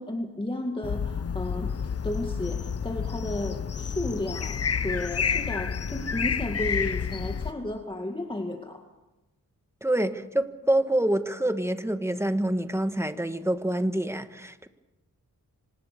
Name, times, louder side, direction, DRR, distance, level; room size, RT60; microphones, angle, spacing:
voice 1, 0.0-1.7 2.0-8.8, left 1 dB, 15° left, 3 dB, 2.0 m, -33 dB
sound 1, 0.8-7.5, left 6 dB, 45° left, 0.9 m, -30 dB
voice 2, 9.8-14.7, right 1 dB, 10° right, 9 dB, 1.4 m, -26 dB
25.5 x 19.0 x 6.8 m, 1.0 s
wide cardioid pair, 90°, 33 cm